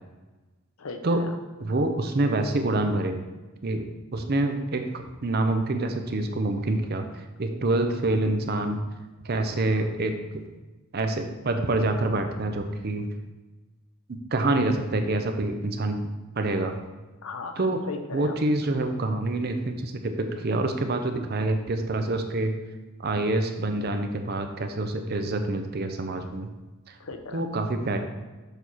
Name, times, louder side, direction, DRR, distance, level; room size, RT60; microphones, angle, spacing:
voice 1, 0.8-1.4 9.7-9.9 14.5-14.7 17.2-18.4 27.0-27.4, left 4 dB, 75° left, 6 dB, 0.7 m, -38 dB
voice 2, 1.6-3.2 3.6-3.9 4.1-8.8 9.2-10.4 10.9-13.1 14.1-16.0 16.4-16.8 17.6-17.8 18.1-22.6 23.0-26.5 26.9-27.0 27.3-28.0, right 2 dB, 45° right, 6 dB, 0.6 m, -26 dB
6.8 x 4.1 x 4.5 m, 1.2 s
head